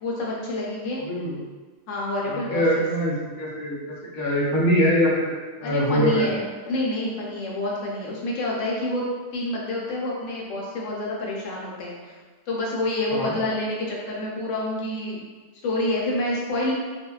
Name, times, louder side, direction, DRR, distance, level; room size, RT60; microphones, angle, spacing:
voice 1, 0.0-1.0 1.9-2.8 5.6-9.0 9.3-12.1 12.5-15.2 15.6-16.7, left 1 dB, 80° left, -3 dB, 0.9 m, -28 dB
voice 2, 1.1-1.4 2.3-3.8 4.1-5.3 5.6-6.3 13.1-13.3, equal, 50° left, -5 dB, 0.6 m, -23 dB
2.6 x 2.1 x 2.2 m, 1.4 s
omnidirectional pair, 1.2 m